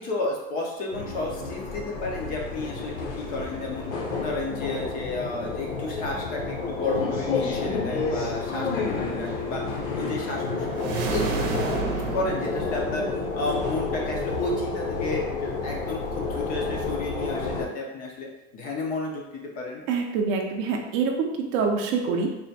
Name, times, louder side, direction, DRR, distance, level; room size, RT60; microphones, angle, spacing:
voice 1, 0.0-3.9 4.2-19.8, left 2 dB, 25° left, -1 dB, 0.4 m, -32 dB
sound 1, 0.9-17.7, left 4 dB, 75° left, 0.9 m, -30 dB
sound 2, 10.7-13.3, right 4 dB, 75° right, 0.7 m, -30 dB
voice 2, 19.9-22.3, right 5 dB, 40° right, 2 dB, 0.5 m, -25 dB
3.4 x 2.1 x 4.0 m, 0.99 s
supercardioid pair, 160°, 40 cm